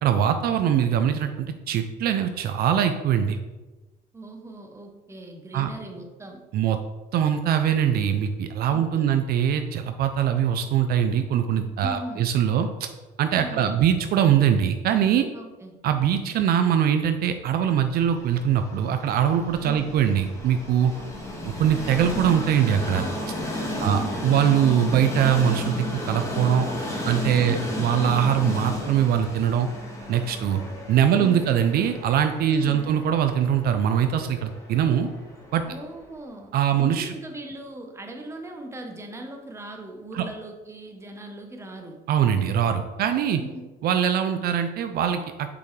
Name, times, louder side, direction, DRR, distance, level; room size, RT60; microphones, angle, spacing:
voice 1, 0.0-3.4 5.5-5.7 6.5-6.8 7.1-12.9 13.2-15.3 15.8-20.9 21.4-23.1 23.8-26.7 27.0-29.7 30.1-30.6 30.9-35.1 35.5-35.6 36.5-37.1 40.1-40.2 42.1-43.4 43.8-45.5, right 9 dB, 65° right, 8 dB, 0.5 m, -22 dB
voice 2, 4.1-6.4 8.7-9.1 11.8-12.3 13.3-13.8 15.3-15.8 19.6-19.9 20.9-21.4 23.7-24.4 27.3-27.8 31.1-31.5 32.4-32.9 35.7-36.5 36.8-42.0 43.4-43.6, right 1 dB, 15° right, 3 dB, 1.0 m, -39 dB
Train, 17.9-36.0, left 1 dB, 15° left, 1.7 m, -34 dB
6.8 x 5.2 x 3.2 m, 1.2 s
cardioid pair, 110°, 17 cm